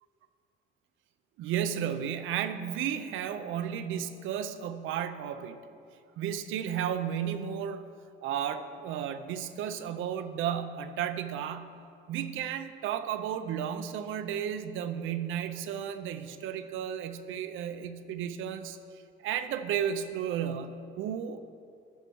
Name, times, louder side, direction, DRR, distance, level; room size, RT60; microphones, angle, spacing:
voice 1, 1.4-5.6 6.2-7.9 8.2-11.7 12.1-18.8 19.2-21.4, right 9 dB, 90° right, 9 dB, 0.6 m, -33 dB
12.0 x 4.5 x 6.2 m, 2.4 s
cardioid pair, 90°, 20 cm